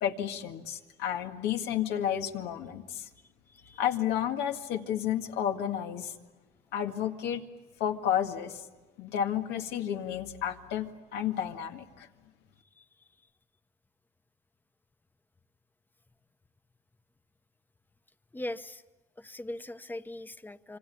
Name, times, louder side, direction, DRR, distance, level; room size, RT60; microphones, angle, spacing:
voice 1, 0.0-3.1 3.8-6.1 6.7-7.4 7.8-8.6 9.0-12.1, left 9 dB, 85° left, 4 dB, 2.0 m, -31 dB
voice 2, 3.5-3.8 12.8-12.9 18.3-18.8 19.2-20.8, left 1 dB, 10° left, 11 dB, 1.0 m, -40 dB
27.0 x 24.5 x 8.5 m, 1.2 s
cardioid pair, 110°, 17 cm